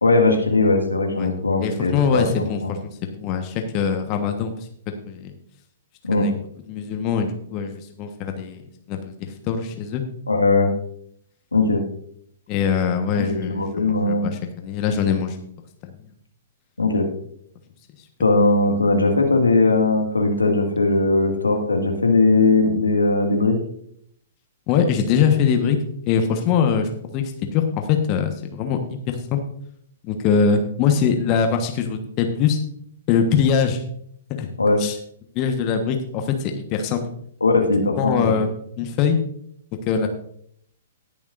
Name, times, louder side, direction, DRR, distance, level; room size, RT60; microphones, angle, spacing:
voice 1, 0.0-2.7 6.1-6.3 10.3-10.7 11.5-11.8 13.1-14.3 16.8-17.1 18.2-23.6 34.6-34.8 37.4-38.3, left 3 dB, 85° left, 3 dB, 1.9 m, -19 dB
voice 2, 1.6-4.5 5.0-5.3 6.1-6.4 6.7-8.6 8.9-10.0 12.5-15.4 15.8-15.9 24.7-25.8 26.1-28.8 29.1-29.4 30.0-32.6 33.1-33.8 34.4-34.5 34.8-35.0 35.3-37.0 38.0-38.5 38.8-39.2 39.9-40.1, left 6 dB, 35° left, 5 dB, 1.3 m, -22 dB
19.5 x 7.1 x 2.6 m, 0.67 s
figure-of-eight pair, 115°, 0 cm